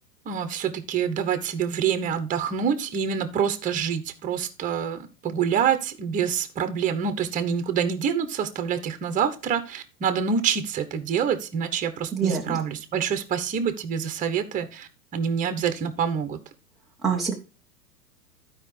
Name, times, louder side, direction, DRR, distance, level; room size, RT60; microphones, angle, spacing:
voice 1, 0.2-16.4, right 7 dB, 15° right, 9 dB, 1.0 m, -26 dB
voice 2, 12.1-12.6 17.0-17.3, right 6 dB, ahead, -3 dB, 0.3 m, -25 dB
14.5 x 4.9 x 3.3 m, 0.32 s
figure-of-eight pair, 105°, 47 cm